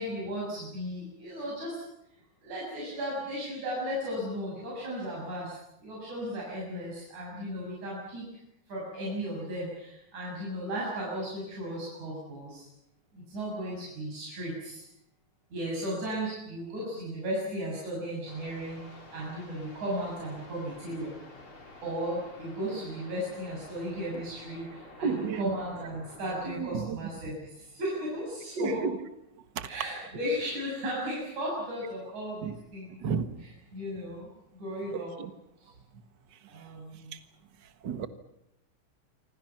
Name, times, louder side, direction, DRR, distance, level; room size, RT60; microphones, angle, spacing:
voice 1, 0.0-1.8 2.4-8.2 8.7-12.7 13.1-14.8 15.5-21.1 21.8-28.8 29.7-33.0 33.7-35.1 36.5-37.2, equal, 75° right, -5 dB, 8.6 m, -35 dB
sound 1, 18.3-26.8, left 2 dB, 45° left, 5.5 m, -50 dB
voice 2, 25.0-25.5 26.5-27.0 28.6-29.0 29.6-29.7 32.4-32.6 33.0-33.4 34.9-35.3 36.3-36.7 36.9-37.2 37.6-38.1, right 6 dB, 45° right, 9 dB, 1.8 m, -33 dB
27.5 x 26.0 x 5.9 m, 0.83 s
omnidirectional pair, 3.4 m